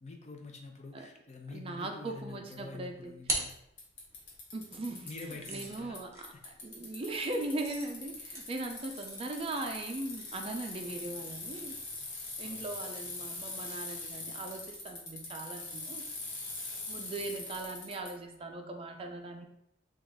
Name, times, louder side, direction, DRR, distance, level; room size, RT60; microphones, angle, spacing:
voice 1, 0.0-3.5 5.0-6.4 12.4-12.8, left 3 dB, 40° left, 2 dB, 0.5 m, -47 dB
voice 2, 1.5-3.1 4.5-5.1 5.5-11.7 12.4-16.0 16.9-19.5, right 2 dB, 30° right, 4 dB, 0.4 m, -39 dB
Bicycle, 2.5-2.6 3.5-3.6 3.8-6.0 6.2-18.1, left 3 dB, 80° left, 1.2 m, -42 dB
sound 1, 2.7-4.4 5.1-12.7, right 2 dB, 15° right, 0.8 m, -44 dB
3.8 x 2.3 x 3.4 m, 0.78 s
head